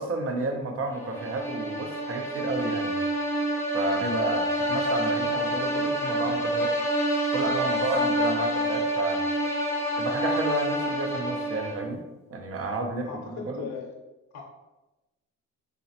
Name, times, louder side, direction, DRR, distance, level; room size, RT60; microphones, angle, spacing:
voice 1, 0.0-3.0 3.7-6.7 7.3-9.2 10.0-12.0 12.3-13.7, right 2 dB, 50° right, 4 dB, 0.7 m, -31 dB
sound 1, 1.0-12.0, equal, 10° left, 0.7 m, -27 dB
voice 2, 13.0-13.9 14.3-14.4, left 5 dB, 60° left, 0 dB, 0.7 m, -37 dB
3.8 x 3.0 x 2.8 m, 1.1 s
cardioid pair, 90°, 30 cm